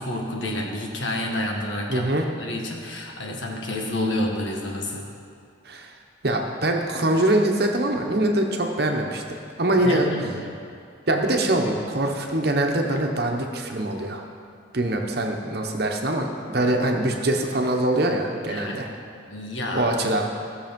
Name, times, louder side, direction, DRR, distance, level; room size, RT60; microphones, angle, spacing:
voice 1, 0.0-2.1 2.4-5.1 9.8-10.5 18.5-18.8 19.3-19.9, left 1 dB, 75° left, 0 dB, 1.6 m, -29 dB
voice 2, 1.9-2.2 5.6-5.9 6.2-9.2 9.6-10.1 11.1-14.2 14.7-18.9 19.7-20.2, right 1 dB, 55° right, 2 dB, 1.1 m, -23 dB
16.0 x 6.8 x 5.3 m, 2.4 s
head